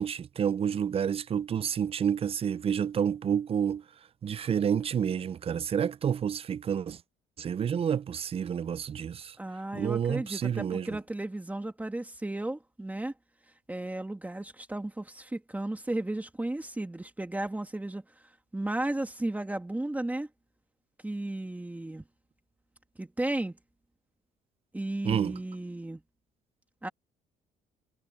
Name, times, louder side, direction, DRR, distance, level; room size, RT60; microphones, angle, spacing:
voice 1, 0.0-3.8 4.2-7.0 7.4-9.4 9.7-11.0 25.0-25.4, right 8 dB, 35° right, 0.5 m, -29 dB
voice 2, 9.4-13.1 13.7-18.0 18.5-20.3 21.0-22.0 23.0-23.6 24.7-26.0 26.8-26.9, right 1 dB, 10° right, 1.8 m, -34 dB
cardioid pair, 110°, 17 cm